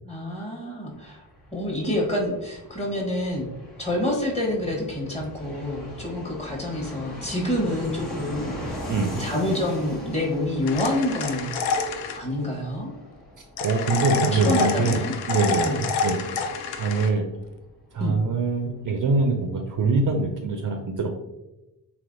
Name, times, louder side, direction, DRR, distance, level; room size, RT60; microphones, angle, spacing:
voice 1, 0.0-1.2 1.5-3.5 3.8-8.6 9.2-11.5 12.1-12.9 14.3-15.1 15.5-15.8 18.0-18.2, left 1 dB, 15° left, -2 dB, 1.1 m, -27 dB
Fixed-wing aircraft airplane, 0.9-19.3 19.5-19.6 19.8-20.6, left 1 dB, 55° left, 1.2 m, -40 dB
voice 2, 8.9-9.2 13.6-16.4 16.8-17.2 17.9-21.3, right 3 dB, 45° right, 4 dB, 0.5 m, -24 dB
sound 1, 10.7-12.2 13.6-17.1, left 5 dB, 80° left, 0.5 m, -28 dB
3.3 x 2.8 x 2.6 m, 0.96 s
supercardioid pair, 60°, 44 cm